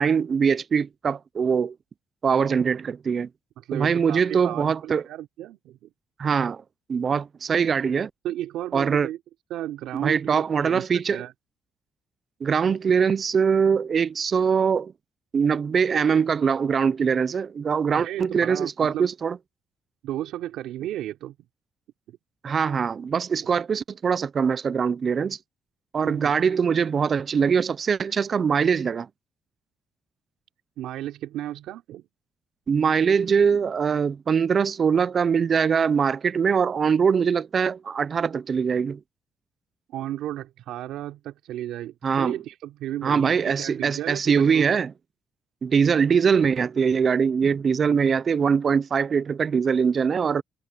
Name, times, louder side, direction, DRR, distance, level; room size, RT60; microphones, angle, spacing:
voice 1, 0.0-1.7 2.2-3.3 3.7-5.0 6.2-6.6 6.9-8.1 8.7-9.1 9.9-11.2 12.4-14.9 15.3-19.4 22.4-25.4 25.9-29.1 32.7-39.0 42.0-42.4 43.0-44.9 45.6-50.4, right 6 dB, 45° right, 0.5 m, -22 dB
voice 2, 3.6-5.9 8.2-9.2 9.5-11.3 17.9-19.1 20.0-21.4 23.4-23.5 26.0-26.3 30.8-32.0 39.9-44.7, right 13 dB, 85° right, 3.9 m, -34 dB
cardioid pair, 90°, 0 cm